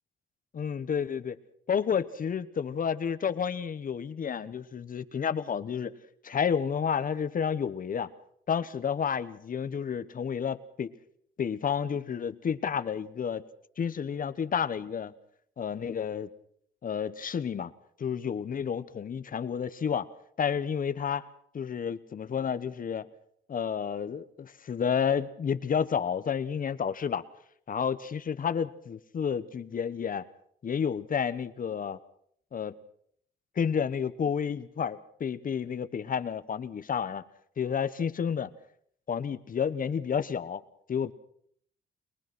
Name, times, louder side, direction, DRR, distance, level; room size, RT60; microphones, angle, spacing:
voice 1, 0.5-1.4 1.7-6.0 6.2-8.1 8.5-10.9 11.4-13.4 13.8-15.1 15.6-16.3 16.8-17.7 18.0-20.1 20.4-21.3 21.5-23.1 23.5-27.2 27.7-30.3 30.6-32.0 32.5-32.8 33.5-37.2 37.6-38.5 39.1-40.6 40.9-41.1, left 7 dB, 45° left, 12 dB, 1.2 m, -30 dB
22.5 x 20.5 x 6.2 m, 0.66 s
cardioid pair, 90°, 20 cm